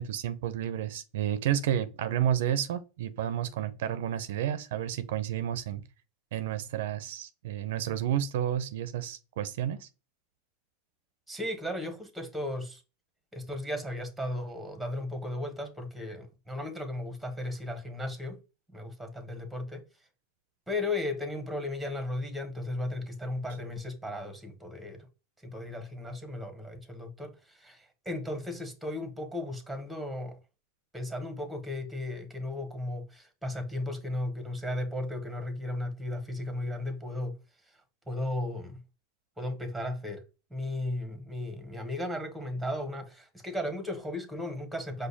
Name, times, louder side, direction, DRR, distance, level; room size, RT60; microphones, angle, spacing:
voice 1, 0.0-5.8 6.3-9.9, right 10 dB, 75° right, 0.5 m, -31 dB
voice 2, 11.3-12.8 13.3-18.4 18.7-19.8 20.7-25.1 25.4-30.4 30.9-37.4 38.1-38.8 39.4-40.2 40.5-45.1, left 1 dB, ahead, 1.1 m, -35 dB
5.0 x 2.2 x 3.9 m
supercardioid pair, 130°, 0 cm